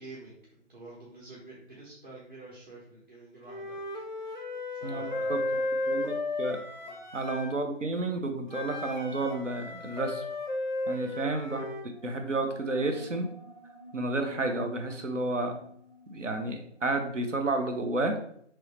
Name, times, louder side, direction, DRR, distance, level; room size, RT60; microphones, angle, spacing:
voice 1, 0.0-3.8 4.2-4.4 4.7-5.4 6.8-7.0 10.8-11.1, right 1 dB, 45° right, -6 dB, 1.0 m, -48 dB
Wind instrument woodwind instrument, 3.5-7.5 8.5-11.9, left 2 dB, 40° left, 0.4 m, -34 dB
voice 2, 4.8-6.6 7.1-10.2 10.9-11.6 12.0-13.3 13.9-15.6 16.1-18.2, right 2 dB, 85° right, 5 dB, 0.7 m, -31 dB
sound 1, 11.9-17.1, left 3 dB, 5° right, 0.8 m, -49 dB
3.0 x 2.7 x 3.2 m, 0.67 s
figure-of-eight pair, 155°, 36 cm